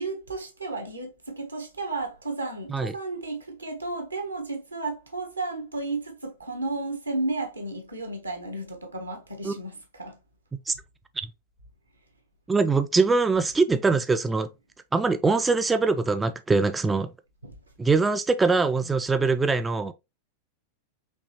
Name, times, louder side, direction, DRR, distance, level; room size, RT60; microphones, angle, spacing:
voice 1, 0.0-10.2 17.4-17.6, right 2 dB, 80° right, 1.2 m, -33 dB
voice 2, 12.5-14.5 14.9-17.1 17.8-19.9, right 4 dB, 10° right, 0.3 m, -23 dB
5.2 x 3.3 x 2.9 m
figure-of-eight pair, 90°, 0 cm